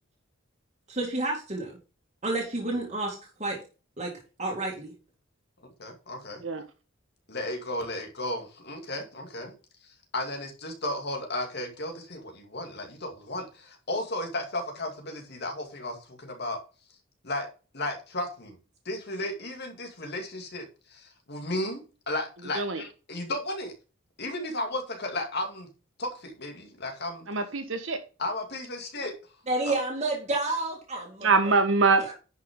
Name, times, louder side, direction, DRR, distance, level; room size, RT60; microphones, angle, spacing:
voice 1, 0.9-1.8 2.2-3.6 4.0-4.1 4.4-4.9 29.5-31.5 32.0-32.1, right 2 dB, 35° right, 2.3 m, -30 dB
voice 2, 5.8-6.4 7.3-9.5 9.8-16.6 17.2-17.5 17.7-18.6 18.9-20.6 20.9-21.8 22.1-23.7 24.2-25.7 26.0-27.3 28.2-29.1 29.7-29.8, left 1 dB, 55° left, 2.4 m, -34 dB
voice 3, 27.3-28.0 31.2-32.0, right 4 dB, 70° right, 1.4 m, -23 dB
10.5 x 5.7 x 3.7 m
head